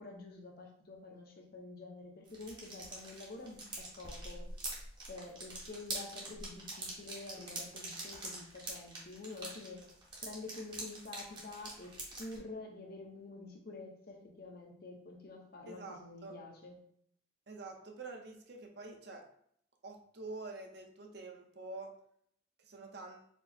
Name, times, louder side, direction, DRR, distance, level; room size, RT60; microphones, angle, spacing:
voice 1, 0.0-4.5 5.1-9.9 10.2-16.8, left 3 dB, 50° left, 2 dB, 0.7 m, -48 dB
sound 1, 2.2-12.4, right 2 dB, 25° right, 1.0 m, -44 dB
voice 2, 15.7-16.4 17.5-19.2 19.8-21.9 22.6-23.3, right 3 dB, 55° right, 2 dB, 0.7 m, -47 dB
4.5 x 2.1 x 4.2 m, 0.67 s
head